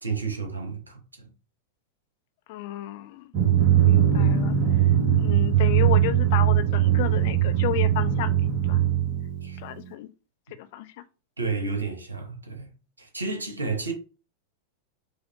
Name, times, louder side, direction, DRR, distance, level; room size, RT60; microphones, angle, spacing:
voice 1, 0.0-1.3 9.4-9.6 11.4-12.7 13.0-13.9, right 4 dB, 75° right, 1.1 m, -31 dB
voice 2, 2.5-3.3 3.8-4.9 5.2-8.4 8.7-8.8 9.6-10.1 10.5-11.0, left 14 dB, 50° left, 0.5 m, -32 dB
Drum, 3.3-9.8, right 10 dB, 45° right, 1.0 m, -21 dB
5.2 x 2.1 x 3.6 m
figure-of-eight pair, 90°, 0 cm